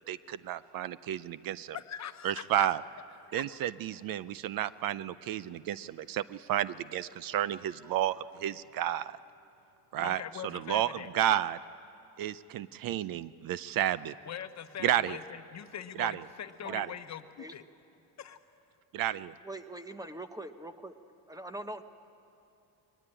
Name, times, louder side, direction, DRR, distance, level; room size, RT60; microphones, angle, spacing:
voice 1, 0.1-1.8 2.2-2.8 3.3-9.2 9.9-10.2 10.5-10.9 11.1-11.6 12.2-14.1 14.8-15.2 16.0-16.1 16.7-16.9 18.9-19.3, right 12 dB, 60° right, 17 dB, 0.6 m, -31 dB
voice 2, 1.7-2.7 3.2-3.4 10.0-11.1 14.2-17.6 18.2-18.4, left 9 dB, 40° left, 10 dB, 1.0 m, -42 dB
voice 3, 19.4-21.0 21.3-21.8, right 1 dB, 10° right, 10 dB, 0.9 m, -42 dB
22.5 x 19.5 x 8.9 m, 2.8 s
cardioid pair, 115°, 40 cm